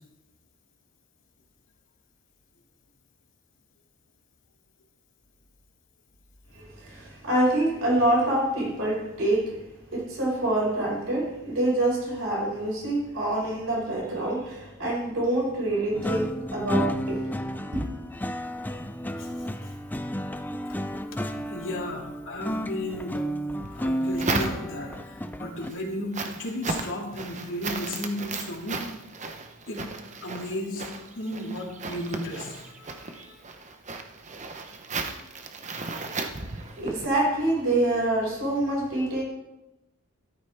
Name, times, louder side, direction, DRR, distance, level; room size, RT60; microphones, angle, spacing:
voice 1, 6.5-9.6 9.9-17.3 17.7-17.8 36.3-39.2, right 1 dB, 65° right, -3 dB, 5.6 m, -26 dB
sound 1, 15.9-25.7, equal, 10° left, 0.4 m, -32 dB
voice 2, 19.2-19.7 21.1-21.2 21.5-23.2 23.7-28.8 29.7-29.8 30.2-30.9 31.1-33.4 35.8-36.3, left 1 dB, 60° left, -1 dB, 2.7 m, -35 dB
sound 2, 23.6-25.0 25.5-37.1, right 3 dB, 35° right, 0.9 m, -35 dB
13.5 x 12.5 x 3.5 m, 0.94 s
head